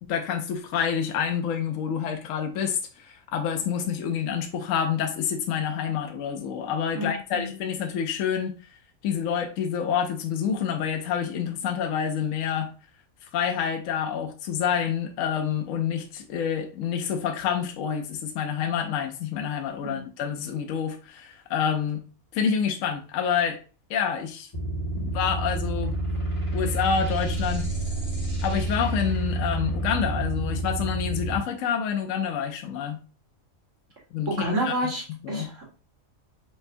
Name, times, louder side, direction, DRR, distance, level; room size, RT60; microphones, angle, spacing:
voice 1, 0.0-12.7 13.2-22.0 22.3-23.6 23.9-24.5 24.9-26.0 26.5-27.7 28.4-33.0 34.1-34.9 35.2-35.5, left 7 dB, 75° left, 1.0 m, -28 dB
voice 2, 6.9-7.5 19.8-20.0 34.3-35.7, right 1 dB, 65° right, 2.1 m, -30 dB
sound 1, 24.5-31.4, right 1 dB, 20° left, 1.8 m, -29 dB
5.2 x 3.2 x 2.6 m
omnidirectional pair, 1.4 m